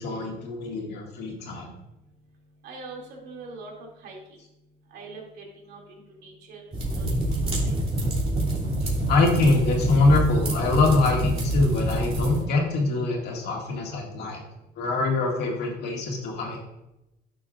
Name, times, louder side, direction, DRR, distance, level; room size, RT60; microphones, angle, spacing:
voice 1, 0.0-1.7 9.1-14.4 14.8-16.6, left 3 dB, 75° left, 0 dB, 2.2 m, -24 dB
voice 2, 2.6-4.2 4.9-6.6 7.0-7.9, right 3 dB, 75° right, -1 dB, 2.8 m, -43 dB
sound 1, 6.7-12.4, right 1 dB, 35° right, 3.0 m, -26 dB
11.0 x 6.8 x 2.5 m, 0.90 s
cardioid pair, 110°, 17 cm